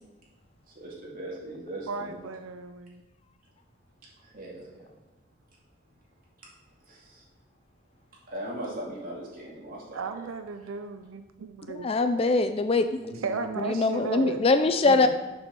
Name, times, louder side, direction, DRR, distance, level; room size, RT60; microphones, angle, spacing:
voice 1, 0.6-2.2 4.2-5.0 6.8-7.2 8.2-10.3 10.6-10.7 13.0-13.6 14.8-15.1, right 1 dB, 45° right, -4 dB, 2.4 m, -40 dB
voice 2, 1.9-3.0 9.9-11.9 13.2-14.4, right 4 dB, 80° right, 8 dB, 0.5 m, -35 dB
voice 3, 11.7-12.9 13.6-15.1, left 3 dB, 30° left, 10 dB, 0.4 m, -23 dB
6.9 x 5.5 x 6.1 m, 1.1 s
head